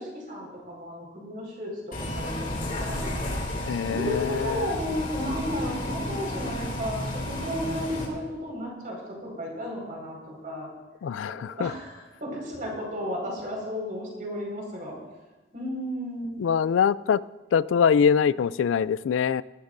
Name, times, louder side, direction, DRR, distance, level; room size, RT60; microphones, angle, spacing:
voice 1, 0.0-3.1 3.8-10.7 11.3-14.9 15.5-16.3, equal, 45° right, -2 dB, 5.0 m, -33 dB
Bus, 1.9-8.1, left 1 dB, 45° left, 2.6 m, -32 dB
voice 2, 3.6-4.7 11.0-11.7 16.4-17.2 17.5-19.4, left 7 dB, 85° left, 19 dB, 0.3 m, -23 dB
19.5 x 13.5 x 2.6 m, 1.2 s
head